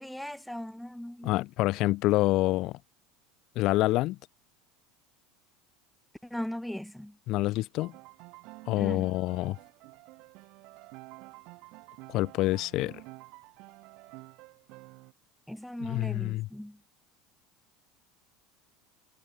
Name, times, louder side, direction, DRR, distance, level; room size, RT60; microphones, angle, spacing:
voice 1, 0.0-1.4 6.2-7.2 8.8-9.1 15.5-16.8, left 1 dB, ahead, 0.8 m, -38 dB
voice 2, 1.2-2.8 3.6-4.2 7.3-7.9 8.7-9.6 12.1-13.0 15.8-16.5, left 18 dB, 55° left, 0.3 m, -27 dB
Piano, 7.8-15.1, right 24 dB, 60° right, 3.6 m, -50 dB
supercardioid pair, 130°, 0 cm